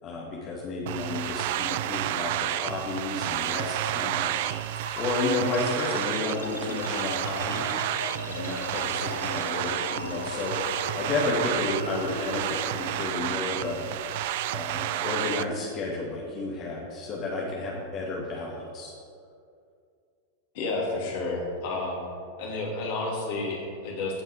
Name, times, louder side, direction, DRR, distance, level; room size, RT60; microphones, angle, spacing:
voice 1, 0.0-4.6 5.0-7.7 8.3-13.9 14.5-18.9, left 3 dB, 35° left, -5 dB, 1.8 m, -32 dB
sound 1, 0.9-15.4, right 14 dB, 50° right, 0.3 m, -31 dB
sound 2, 4.8-15.7, left 3 dB, 75° left, 0.7 m, -39 dB
voice 2, 20.5-22.0 22.4-24.2, left 2 dB, 50° left, -2 dB, 2.8 m, -31 dB
16.0 x 5.4 x 4.8 m, 2.3 s
figure-of-eight pair, 90°, 0 cm